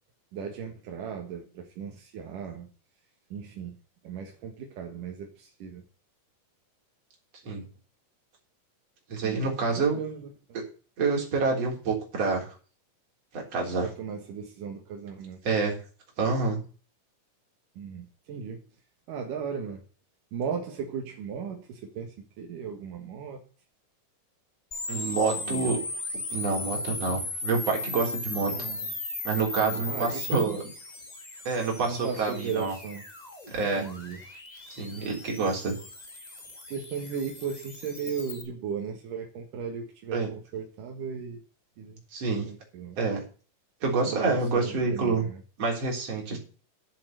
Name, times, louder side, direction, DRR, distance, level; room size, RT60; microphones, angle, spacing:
voice 1, 0.3-2.7 3.3-3.8 4.0-5.8 9.2-9.4 9.8-10.3 13.8-15.4 17.8-18.6 19.1-19.8 20.3-23.4 25.4-25.8 28.5-28.9 29.6-30.6 31.9-33.0 33.7-34.2 36.7-41.4 41.8-42.0 42.5-43.0 44.1-45.4, right 6 dB, 75° right, 2 dB, 3.2 m, -36 dB
voice 2, 9.1-10.0 11.0-12.5 13.3-13.9 15.4-15.8 16.2-16.6 24.9-25.8 26.3-28.5 29.2-30.6 31.4-32.7 33.5-33.9 34.8-35.7 40.1-40.3 42.1-42.5 43.0-43.2 43.8-45.3 45.6-46.4, right 4 dB, 50° right, 0 dB, 4.8 m, -27 dB
sound 1, 24.7-38.4, left 2 dB, 20° left, 1.1 m, -37 dB
11.0 x 7.8 x 6.6 m, 0.37 s
omnidirectional pair, 3.8 m